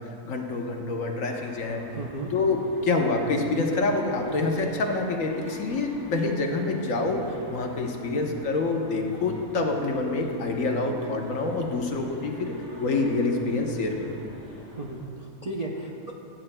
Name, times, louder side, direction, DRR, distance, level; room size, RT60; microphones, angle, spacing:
voice 1, 0.2-1.9 2.3-14.2, left 3 dB, 65° left, 2 dB, 1.2 m, -27 dB
sound 1, 1.4-15.1, equal, 20° right, 2.0 m, -46 dB
voice 2, 1.9-2.3 14.8-16.1, right 2 dB, 45° right, -3 dB, 0.5 m, -35 dB
16.5 x 9.0 x 2.2 m, 2.6 s
omnidirectional pair, 1.5 m